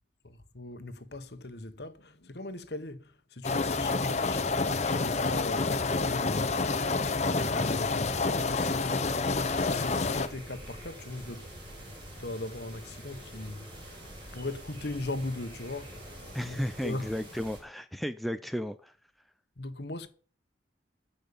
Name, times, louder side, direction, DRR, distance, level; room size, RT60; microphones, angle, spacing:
voice 1, 0.2-4.5 4.8-9.1 9.6-11.5 12.2-17.1 19.6-20.1, left 2 dB, 60° left, 1.2 m, -39 dB
sound 1, 3.4-10.3, left 3 dB, 35° left, 0.8 m, -28 dB
sound 2, 9.2-17.6, equal, 25° right, 5.4 m, -46 dB
voice 2, 16.3-18.9, equal, ahead, 0.5 m, -34 dB
15.0 x 5.6 x 7.0 m
head